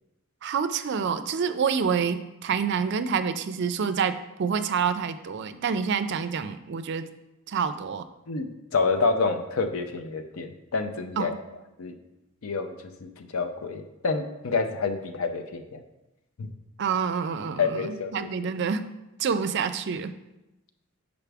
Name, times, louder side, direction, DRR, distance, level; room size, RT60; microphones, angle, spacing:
voice 1, 0.4-7.1 7.5-8.0 11.2-11.3 16.8-18.9 19.2-20.1, right 6 dB, 55° right, 10 dB, 0.4 m, -27 dB
voice 2, 8.3-11.3 11.8-11.9 12.4-12.8 13.0-15.8 16.4-16.5 17.6-18.3, left 4 dB, 75° left, 8 dB, 0.5 m, -28 dB
5.8 x 5.1 x 3.4 m, 0.96 s
head